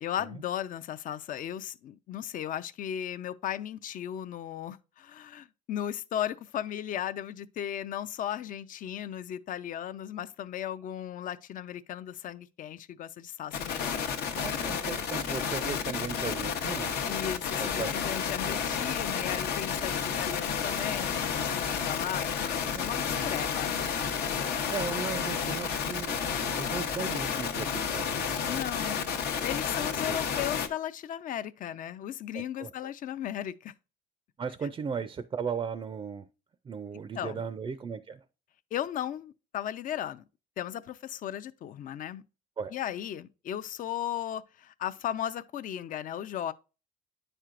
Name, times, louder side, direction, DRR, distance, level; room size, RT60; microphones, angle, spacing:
voice 1, 0.0-14.1 14.4-14.6 17.1-23.7 28.5-29.1 29.4-33.7 37.2-37.4 38.7-40.2 40.6-42.2 42.7-46.5, left 10 dB, 50° left, 0.5 m, -36 dB
sound 1, 13.5-30.7, left 7 dB, 75° left, 0.9 m, -31 dB
voice 2, 14.3-17.0 17.6-17.9 22.6-23.4 24.7-28.9 29.9-30.2 32.3-32.9 34.4-36.3 36.6-38.2 42.6-42.7, right 6 dB, 30° right, 0.4 m, -37 dB
10.0 x 4.4 x 2.5 m
cardioid pair, 110°, 17 cm